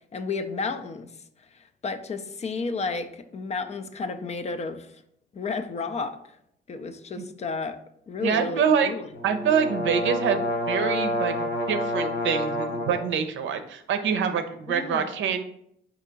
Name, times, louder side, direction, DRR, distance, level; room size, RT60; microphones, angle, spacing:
voice 1, 0.1-1.1 1.5-4.9 5.3-6.2 6.7-7.8 8.1-9.1 14.7-15.1, left 4 dB, 35° left, 9 dB, 0.4 m, -32 dB
voice 2, 8.2-8.9 9.2-10.4 10.7-15.4, right 7 dB, 75° right, 8 dB, 0.6 m, -25 dB
sound 1, 9.1-13.0, left 1 dB, 65° left, 1.0 m, -28 dB
4.5 x 2.8 x 3.9 m, 0.72 s
cardioid pair, 90°, 20 cm